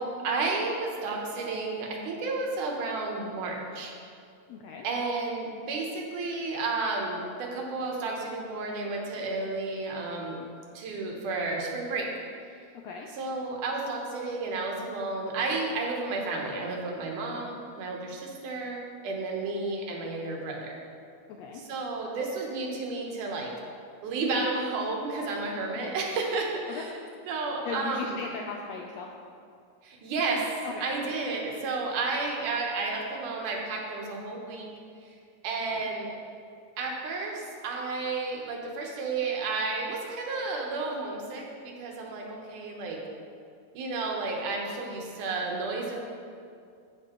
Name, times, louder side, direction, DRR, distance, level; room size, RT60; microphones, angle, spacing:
voice 1, 0.0-3.9 4.8-10.5 10.7-12.1 13.2-20.8 21.7-23.5 24.0-26.9 27.3-28.2 29.8-30.5 30.8-34.7 35.0-35.2 35.4-36.1 36.8-43.0 43.7-46.0, right 3 dB, 85° right, 0 dB, 2.7 m, -32 dB
voice 2, 4.5-4.9 12.8-13.1 21.3-21.7 25.7-25.9 26.7-26.9 27.6-29.1 30.6-30.9 35.7-35.9, left 5 dB, 80° left, 1 dB, 1.5 m, -38 dB
14.0 x 5.8 x 3.0 m, 2.4 s
omnidirectional pair, 3.5 m